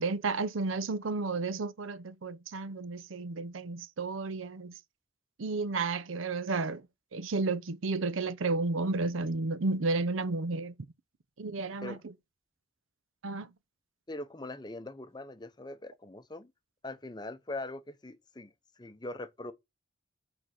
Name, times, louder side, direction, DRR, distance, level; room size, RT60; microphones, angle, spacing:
voice 1, 0.0-4.8 5.4-6.9 7.1-10.7 11.4-12.1 13.2-13.5, right 3 dB, 85° right, 0.6 m, -32 dB
voice 2, 14.1-16.5 16.8-19.5, left 2 dB, 20° left, 0.6 m, -42 dB
8.7 x 3.9 x 5.0 m
head